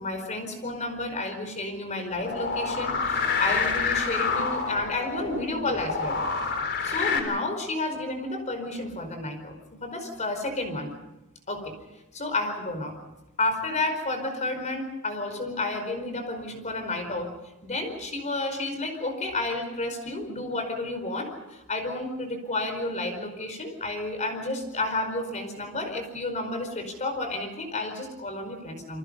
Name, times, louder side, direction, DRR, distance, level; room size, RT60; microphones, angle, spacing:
voice 1, 0.0-6.2 6.8-10.9 11.5-11.8 12.1-13.0 13.4-17.3 17.6-29.0, left 2 dB, 35° left, 6 dB, 5.0 m, -31 dB
sound 1, 2.2-7.2, left 5 dB, 55° left, 4.0 m, -28 dB
29.0 x 24.0 x 5.5 m, 0.97 s
head